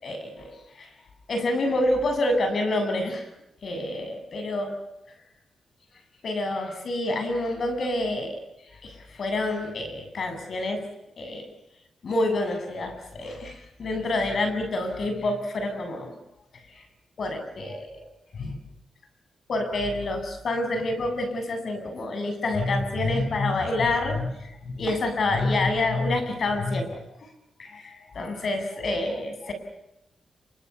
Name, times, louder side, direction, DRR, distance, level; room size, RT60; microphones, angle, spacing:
voice 1, 0.0-0.9 1.3-3.3 3.6-4.7 6.2-8.4 8.8-10.8 11.2-11.5 12.0-16.1 16.7-16.8 17.2-18.0 18.3-18.6 19.5-27.0 27.6-29.5, left 2 dB, 60° left, 7 dB, 7.6 m, -27 dB
27.5 x 25.5 x 7.1 m, 0.87 s
cardioid pair, 70°, 0 cm